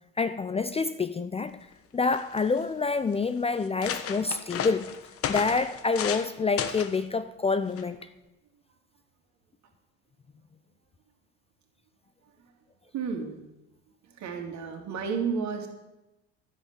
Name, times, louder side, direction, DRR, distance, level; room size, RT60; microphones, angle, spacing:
voice 1, 0.2-1.6 1.9-4.9 5.3-8.1, left 4 dB, 20° left, 0.6 m, -27 dB
sound 1, 1.7-1.8 2.0-2.6 3.2-3.3 3.6-6.3 6.6-7.0 7.8-8.0, left 8 dB, 40° left, 1.2 m, -34 dB
voice 2, 12.9-13.4 14.2-15.7, right 5 dB, 55° right, 2.5 m, -31 dB
10.5 x 8.0 x 8.2 m
hypercardioid pair, 70°, 34 cm